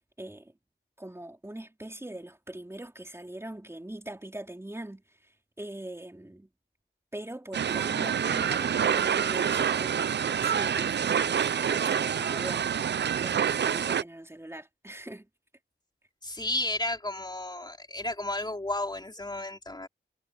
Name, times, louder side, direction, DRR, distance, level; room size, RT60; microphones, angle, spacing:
voice 1, 0.2-0.5 1.0-5.3 5.6-6.5 7.1-12.7 13.2-15.3, right 1 dB, 10° right, 3.3 m, -41 dB
sound 1, 7.5-14.0, right 8 dB, 55° right, 0.5 m, -27 dB
voice 2, 16.2-19.9, left 2 dB, 20° left, 3.6 m, -33 dB
wide cardioid pair, 100°, 21 cm